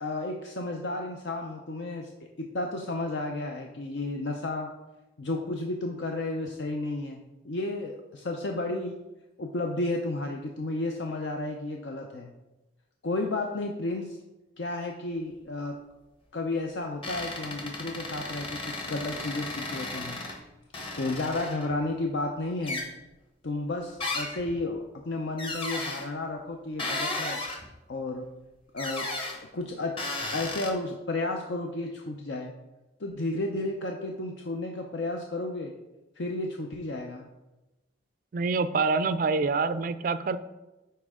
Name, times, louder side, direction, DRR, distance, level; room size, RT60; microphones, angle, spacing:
voice 1, 0.0-2.1 2.4-4.7 5.2-8.9 9.4-12.3 13.0-14.2 14.6-15.8 16.3-20.2 21.0-22.9 23.4-27.4 27.9-28.3 28.7-29.1 29.5-30.0 30.3-32.5 33.0-35.7 36.2-37.3, left 2 dB, 75° left, 2 dB, 0.6 m, -32 dB
sound 1, 17.0-20.4 20.7-21.8 22.6-22.9 24.0-24.6 25.4-26.1 26.8-27.7 28.8-29.4 30.0-30.7, left 2 dB, 30° left, 1.0 m, -34 dB
voice 2, 38.3-40.4, right 4 dB, 45° right, 13 dB, 0.3 m, -26 dB
10.0 x 4.3 x 3.6 m, 1.0 s
head